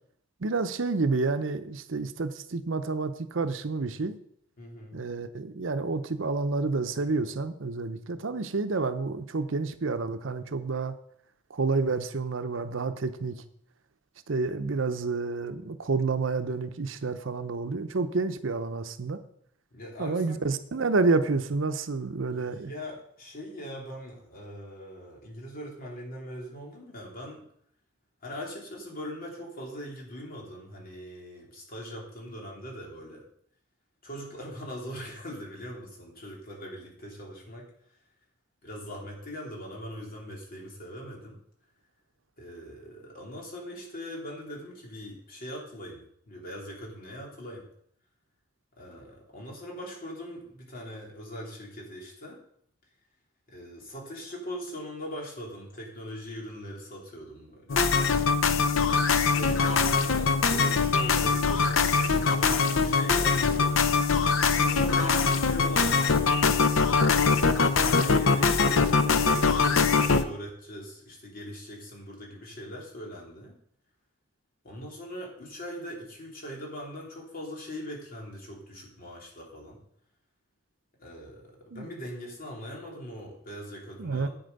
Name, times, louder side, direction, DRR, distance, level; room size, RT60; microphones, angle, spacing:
voice 1, 0.4-4.2 4.9-10.9 11.5-13.4 14.3-19.2 20.0-22.7 81.7-81.8 84.0-84.3, right 3 dB, 70° right, 10 dB, 0.7 m, -29 dB
voice 2, 4.6-5.0 19.7-20.4 22.3-27.5 28.2-33.3 34.0-38.0 38.6-41.4 42.4-47.7 48.8-52.4 53.5-57.9 59.3-66.4 67.8-73.6 74.6-79.8 81.0-84.3, equal, 45° left, -2 dB, 3.2 m, -41 dB
sound 1, 57.7-70.2, left 4 dB, 80° left, 0.7 m, -23 dB
8.7 x 7.8 x 5.3 m, 0.68 s
head